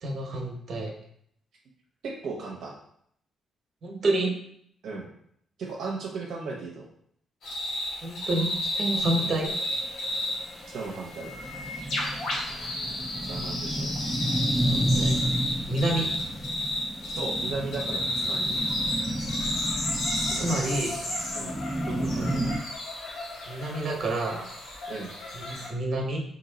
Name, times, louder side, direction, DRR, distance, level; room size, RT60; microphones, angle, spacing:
voice 1, 0.0-0.9 3.8-4.3 8.0-9.5 14.7-15.2 15.7-16.1 20.3-21.0 23.5-24.5 25.3-26.2, right 2 dB, 50° right, 1 dB, 0.9 m, -29 dB
voice 2, 2.0-2.7 4.8-5.1 5.6-6.9 7.5-7.6 9.1-9.3 10.7-11.3 13.2-13.9 17.1-18.6 20.2-21.0 21.3-21.6 21.9-22.6 24.9-25.1, right 4 dB, 75° right, -2 dB, 0.6 m, -36 dB
sound 1, 7.4-25.7, left 1 dB, 75° left, 1.0 m, -32 dB
sound 2, 9.9-10.0 10.3-10.4 10.7-10.8 11.0-22.6, right 1 dB, ahead, 0.3 m, -31 dB
3.0 x 2.7 x 3.8 m, 0.67 s
cardioid pair, 110°, 0 cm